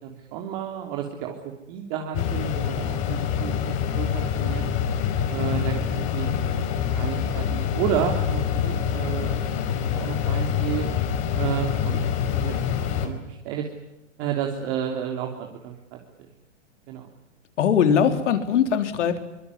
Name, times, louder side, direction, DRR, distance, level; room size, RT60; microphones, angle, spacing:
voice 1, 0.0-4.6 5.3-5.8 6.1-10.9 11.3-12.1 12.4-12.6 13.0-13.7 14.2-16.3 16.9-17.1, right 9 dB, 45° right, 2 dB, 3.4 m, -31 dB
sound 1, 2.1-13.1, left 8 dB, 40° left, 4.9 m, -26 dB
voice 2, 17.6-19.2, left 7 dB, 70° left, 8 dB, 3.7 m, -21 dB
25.0 x 21.0 x 9.9 m, 0.94 s
hypercardioid pair, 130°, 37 cm